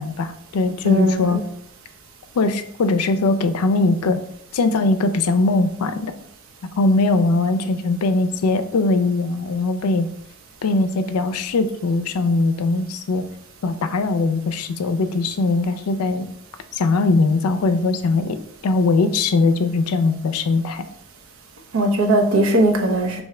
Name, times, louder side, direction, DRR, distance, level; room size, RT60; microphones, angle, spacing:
voice 1, 0.0-1.4 2.4-4.2 4.5-6.1 6.8-10.1 10.6-13.2 13.6-16.3 16.7-20.8, left 3 dB, 85° left, 9 dB, 0.4 m, -20 dB
voice 2, 0.8-1.4 21.7-23.2, right 1 dB, 65° right, 3 dB, 0.7 m, -18 dB
4.7 x 2.6 x 3.2 m, 0.72 s
head